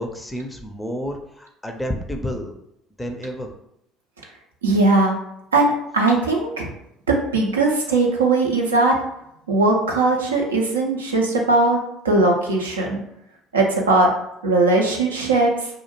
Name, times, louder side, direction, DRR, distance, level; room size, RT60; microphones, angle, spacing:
voice 1, 0.0-2.5 3.0-3.5, equal, 10° left, 3 dB, 0.4 m, -30 dB
voice 2, 4.6-5.2 5.5-6.7 7.1-8.9 9.5-11.8 12.0-13.0 13.5-14.1 14.4-15.7, right 2 dB, 80° right, 0 dB, 0.4 m, -19 dB
2.3 x 2.1 x 3.0 m, 0.79 s
figure-of-eight pair, 55°, 0 cm